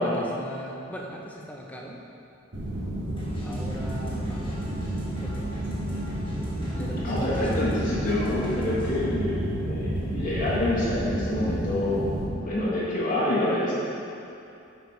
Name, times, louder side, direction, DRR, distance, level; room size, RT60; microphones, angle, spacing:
voice 1, 0.0-2.0 3.4-4.6 5.1-5.7 6.7-8.1, equal, 10° left, -1 dB, 0.6 m, -38 dB
sound 1, 2.5-12.3, right 1 dB, 60° right, 1.5 m, -31 dB
sound 2, 3.2-9.0, equal, 25° left, 1.4 m, -44 dB
voice 2, 7.0-13.7, left 1 dB, 40° left, -8 dB, 1.2 m, -27 dB
9.4 x 5.0 x 3.2 m, 2.7 s
head